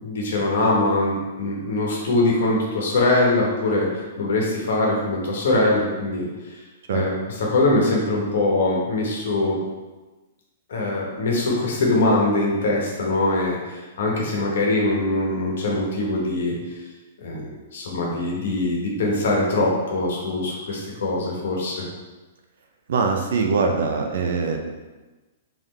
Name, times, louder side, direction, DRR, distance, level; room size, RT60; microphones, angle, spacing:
voice 1, 0.0-6.6 6.9-9.6 10.7-16.8 17.2-21.8, left 2 dB, 70° left, -2 dB, 1.1 m, -22 dB
voice 2, 22.9-24.6, right 4 dB, 70° right, 3 dB, 0.5 m, -22 dB
3.5 x 3.5 x 3.2 m, 1.2 s
hypercardioid pair, 120°, 0 cm